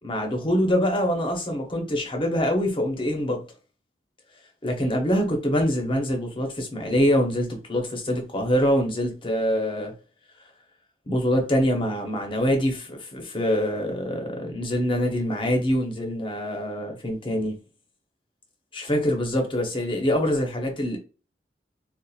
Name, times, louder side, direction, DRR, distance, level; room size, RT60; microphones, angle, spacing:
voice 1, 0.0-3.4 4.6-9.9 11.1-17.6 18.7-21.0, equal, 30° left, 0.8 m, -24 dB
4.1 x 2.4 x 2.3 m
head